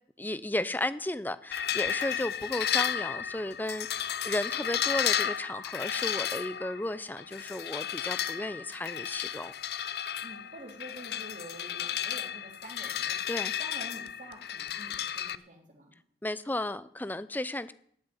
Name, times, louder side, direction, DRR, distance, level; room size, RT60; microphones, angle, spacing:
voice 1, 0.2-9.5 13.3-13.6 16.2-17.7, left 1 dB, 10° left, 15 dB, 0.5 m, -34 dB
sound 1, 1.5-15.3, left 9 dB, 60° left, 0.5 m, -33 dB
voice 2, 10.2-13.2 13.6-15.9, right 1 dB, 45° right, 1 dB, 3.1 m, -47 dB
12.5 x 6.7 x 9.6 m, 0.65 s
head